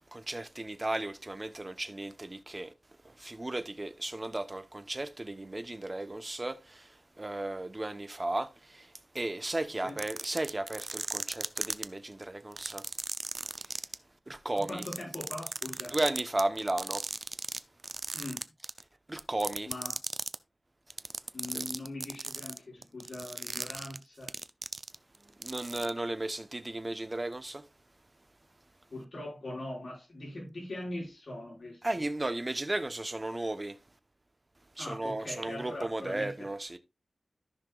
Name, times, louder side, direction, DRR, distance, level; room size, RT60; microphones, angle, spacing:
voice 1, 0.1-2.7 3.0-12.9 13.5-13.8 14.3-14.8 15.9-17.3 19.1-19.7 21.5-21.6 25.4-27.6 31.8-33.8 34.8-36.8, right 2 dB, 25° right, 0.9 m, -35 dB
sound 1, 9.9-11.8 12.5-13.9 14.6-17.6 17.8-18.8 19.2-20.3 20.9-25.2 25.4-25.9, right 3 dB, 50° right, 0.5 m, -36 dB
voice 2, 14.5-16.0 18.1-18.5 19.7-19.9 21.3-24.3 28.9-32.0 34.8-36.3, left 1 dB, 60° left, 5.7 m, -41 dB
14.0 x 5.9 x 2.4 m
wide cardioid pair, 90°, 0 cm